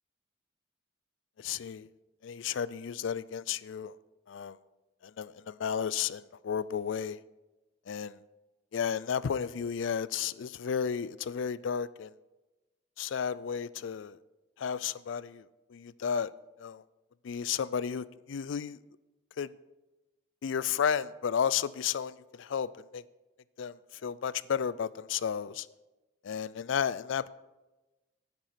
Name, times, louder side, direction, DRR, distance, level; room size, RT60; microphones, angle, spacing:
voice 1, 1.4-1.9 2.2-3.9 4.3-4.6 5.0-7.2 7.9-8.2 8.7-12.1 13.0-14.2 14.6-16.3 16.6-16.8 17.2-18.8 19.4-19.5 20.4-23.0 23.6-25.7 26.2-27.3, left 7 dB, 75° left, 0.4 m, -33 dB
10.5 x 9.7 x 5.0 m
head